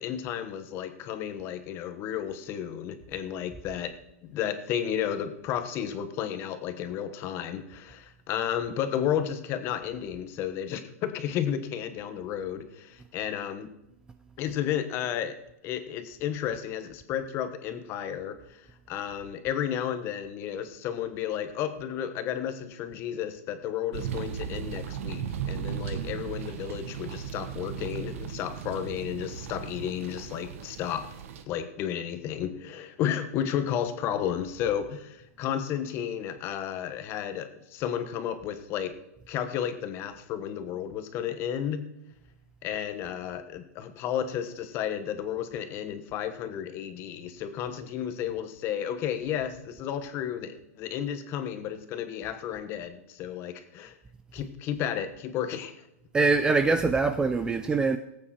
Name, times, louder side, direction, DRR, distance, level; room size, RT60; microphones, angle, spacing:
voice 1, 0.0-3.9 4.2-13.7 14.4-15.4 15.6-31.1 31.5-38.9 39.3-41.9 42.6-53.9 54.3-55.7, left 9 dB, 30° left, 1.2 m, -32 dB
sound 1, 23.9-31.4, right 8 dB, 65° right, 1.4 m, -36 dB
voice 2, 56.1-58.0, right 4 dB, 10° right, 0.4 m, -23 dB
18.5 x 8.7 x 4.4 m
supercardioid pair, 155°, 8 cm